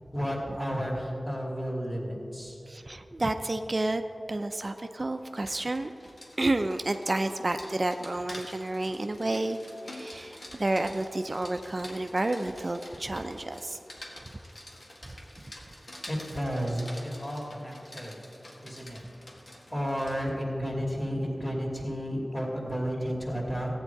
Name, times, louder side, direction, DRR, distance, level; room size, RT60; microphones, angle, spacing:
voice 1, 0.1-2.6 16.1-18.2 18.6-19.0 19.7-23.7, equal, 25° left, -2 dB, 2.8 m, -32 dB
voice 2, 2.7-5.9 6.4-9.6 9.9-13.8, right 2 dB, 45° right, 7 dB, 0.5 m, -30 dB
Rain, 5.2-20.3, left 1 dB, 65° left, 1.8 m, -48 dB
14.5 x 8.8 x 4.7 m, 2.9 s
wide cardioid pair, 50°, 0 cm